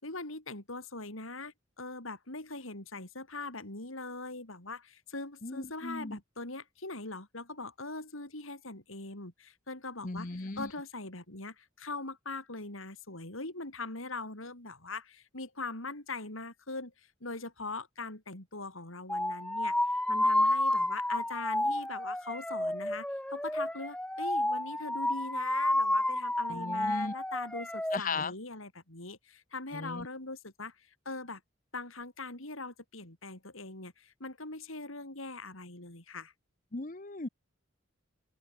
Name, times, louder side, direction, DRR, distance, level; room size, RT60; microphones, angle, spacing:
voice 1, 0.0-31.4 31.7-36.3, left 3 dB, 80° left, 5.1 m, -41 dB
voice 2, 5.4-6.2 10.0-10.7 26.5-27.1 27.9-28.3 29.7-30.1 36.7-37.3, left 3 dB, 40° left, 1.0 m, -37 dB
sound 1, 19.1-28.0, left 1 dB, 5° left, 0.8 m, -30 dB
open air
head